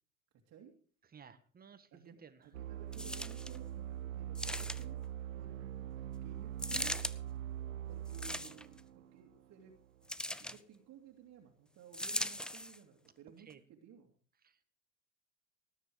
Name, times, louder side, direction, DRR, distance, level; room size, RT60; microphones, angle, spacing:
voice 1, 1.1-2.5 13.4-13.6 14.4-14.6, right 7 dB, 20° right, 11 dB, 1.7 m, -57 dB
voice 2, 1.9-5.0 5.4-7.1 7.9-9.7 10.4-14.1, right 8 dB, 40° right, 1 dB, 2.7 m, -57 dB
sound 1, 2.5-10.1, right 11 dB, 80° right, 1.1 m, -43 dB
sound 2, 2.9-3.6 4.3-5.0 6.6-7.1 8.1-8.8 10.1-10.6 11.9-12.8 13.5-13.6, left 1 dB, ahead, 0.6 m, -39 dB
18.5 x 10.0 x 4.8 m, 0.43 s
hypercardioid pair, 90°, 40 cm